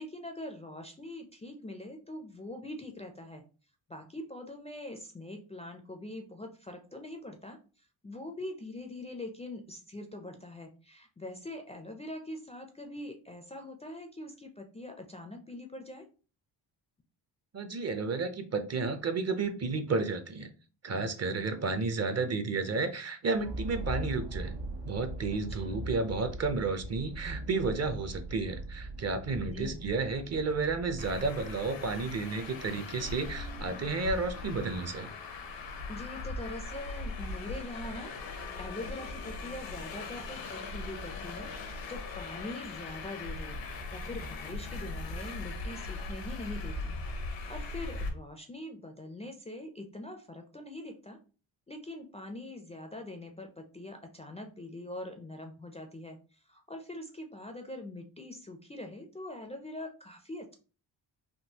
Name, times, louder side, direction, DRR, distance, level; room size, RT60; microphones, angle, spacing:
voice 1, 0.0-3.4 3.9-16.1 25.5-25.8 29.4-29.9 35.9-38.1 38.6-41.5 41.9-43.6 43.9-47.0 47.5-51.2 51.7-60.5, left 1 dB, 15° left, 4 dB, 0.4 m, -43 dB
voice 2, 17.5-20.5 20.8-24.5 24.9-35.1, right 4 dB, 35° right, 8 dB, 0.5 m, -32 dB
sound 1, 23.3-32.9, right 2 dB, 80° right, 0.7 m, -41 dB
Traffic noise roadway noise, 31.0-48.1, left 3 dB, 90° left, 0.9 m, -39 dB
3.6 x 2.3 x 2.8 m, 0.37 s
cardioid pair, 80°, 43 cm